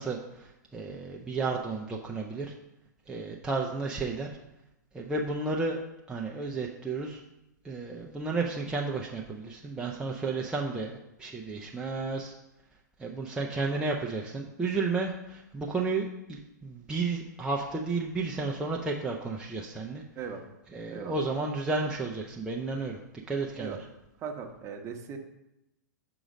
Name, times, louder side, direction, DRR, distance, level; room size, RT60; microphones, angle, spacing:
voice 1, 0.0-2.5 3.1-4.3 4.9-5.8 6.1-7.2 7.6-12.3 13.0-20.0 20.7-23.0 23.3-23.8, right 3 dB, 10° right, -2 dB, 0.5 m, -32 dB
voice 2, 20.2-20.5 20.9-21.2 23.6-23.8 24.2-25.2, right 6 dB, 30° right, 4 dB, 0.9 m, -38 dB
6.3 x 3.9 x 5.0 m, 0.90 s
hypercardioid pair, 110°, 10 cm